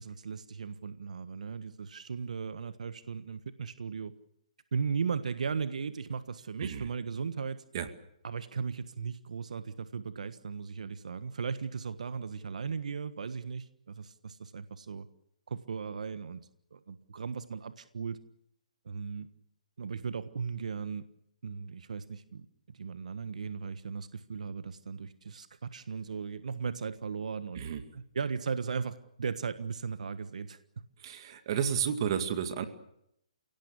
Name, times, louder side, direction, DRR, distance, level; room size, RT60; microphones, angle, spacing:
voice 1, 0.0-4.1 4.7-7.6 8.2-15.1 15.5-18.2 18.8-19.3 19.8-21.1 21.4-27.6 27.9-30.6, right 5 dB, 70° right, 12 dB, 1.4 m, -37 dB
voice 2, 31.0-32.7, right 8 dB, 40° right, 8 dB, 2.2 m, -31 dB
30.0 x 17.5 x 8.3 m, 0.77 s
hypercardioid pair, 155°, 4 cm